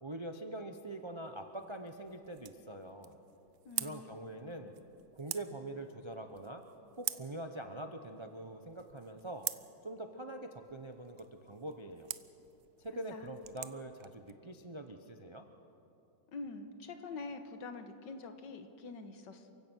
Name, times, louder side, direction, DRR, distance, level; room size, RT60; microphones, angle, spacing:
voice 1, 0.0-3.2 3.8-4.8 5.1-6.6 6.9-9.5 9.8-12.1 12.8-15.4, right 1 dB, 40° right, 6 dB, 0.4 m, -44 dB
sound 1, 0.9-14.3, right 13 dB, 70° right, 1.1 m, -47 dB
voice 2, 3.7-4.2 13.1-13.3 16.3-19.5, left 3 dB, 70° left, 8 dB, 1.9 m, -45 dB
28.5 x 16.0 x 6.2 m, 3.0 s
omnidirectional pair, 2.0 m